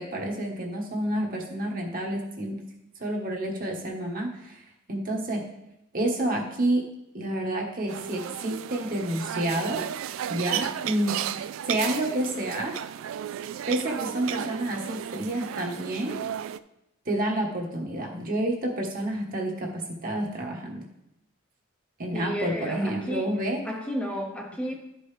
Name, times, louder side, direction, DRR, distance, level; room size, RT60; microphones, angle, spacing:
voice 1, 0.0-2.6 3.0-4.6 4.9-5.4 5.9-6.8 7.1-9.8 10.3-11.2 11.7-12.8 13.7-16.2 17.0-20.8 22.0-23.6, right 1 dB, 45° right, 0 dB, 1.4 m, -29 dB
sound 1, 7.9-16.6, right 9 dB, 75° right, 0.3 m, -34 dB
voice 2, 22.1-23.3 23.7-24.7, equal, 5° left, 0 dB, 0.8 m, -32 dB
12.0 x 5.3 x 3.4 m, 0.85 s
head